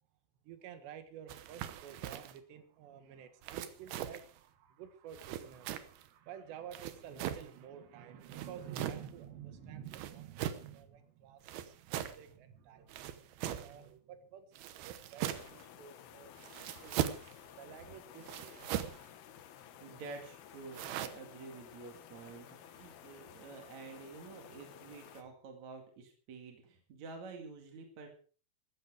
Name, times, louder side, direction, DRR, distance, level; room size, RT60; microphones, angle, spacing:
voice 1, 0.4-16.3 16.6-17.1 17.6-18.9, right 9 dB, 90° right, 9 dB, 3.7 m, -51 dB
sound 1, 1.3-2.4 3.4-4.3 5.1-6.1 6.7-7.5 8.2-9.1 9.9-10.7 11.4-12.2 12.9-13.8 14.6-15.6 16.4-17.3 18.2-19.1 20.7-21.1, right 11 dB, 75° right, 2.9 m, -40 dB
sound 2, 15.3-25.2, left 9 dB, 70° left, 3.1 m, -54 dB
voice 2, 19.6-28.1, right 4 dB, 50° right, 3 dB, 3.1 m, -49 dB
15.0 x 14.0 x 4.9 m, 0.41 s
omnidirectional pair, 4.8 m